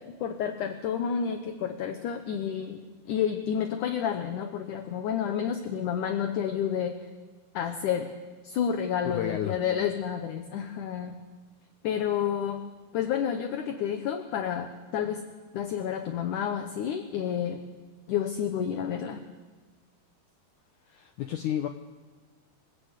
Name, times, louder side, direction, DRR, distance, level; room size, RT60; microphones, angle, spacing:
voice 1, 0.0-2.8 3.1-7.0 7.5-8.1 8.4-11.2 11.8-12.6 12.9-15.2 15.5-17.6 18.1-19.2, left 8 dB, 65° left, 7 dB, 2.1 m, -30 dB
voice 2, 9.0-9.6 20.9-21.7, left 10 dB, 90° left, 6 dB, 1.7 m, -31 dB
28.0 x 18.5 x 8.3 m, 1.4 s
omnidirectional pair, 4.8 m